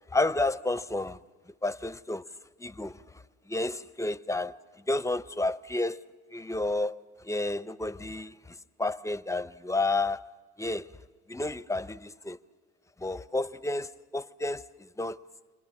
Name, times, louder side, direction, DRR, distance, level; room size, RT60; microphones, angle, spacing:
voice 1, 0.1-1.2 1.6-2.3 2.6-3.0 3.5-4.6 4.9-6.0 6.3-10.3 10.6-10.9 11.3-12.4 13.0-14.7 15.0-15.2, left 2 dB, 10° left, 0.6 m, -31 dB
30.0 x 21.5 x 7.2 m
cardioid pair, 90°, 30 cm